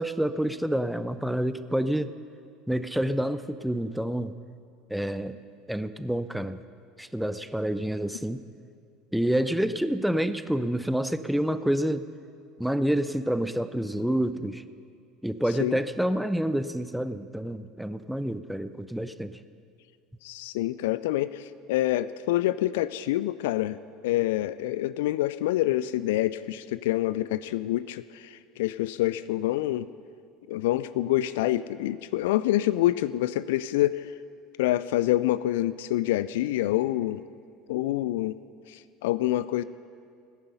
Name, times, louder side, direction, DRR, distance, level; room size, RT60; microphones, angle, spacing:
voice 1, 0.0-2.1 2.7-4.3 4.9-5.4 5.7-6.6 7.0-8.4 9.1-12.1 12.6-14.6 15.2-19.4, right 1 dB, ahead, 12 dB, 0.6 m, -28 dB
voice 2, 20.2-23.8 24.0-29.9 30.5-34.1 34.6-37.3 37.7-38.4 38.7-39.6, left 15 dB, 65° left, 15 dB, 0.3 m, -27 dB
17.5 x 10.5 x 5.5 m, 2.3 s
figure-of-eight pair, 70°, 0 cm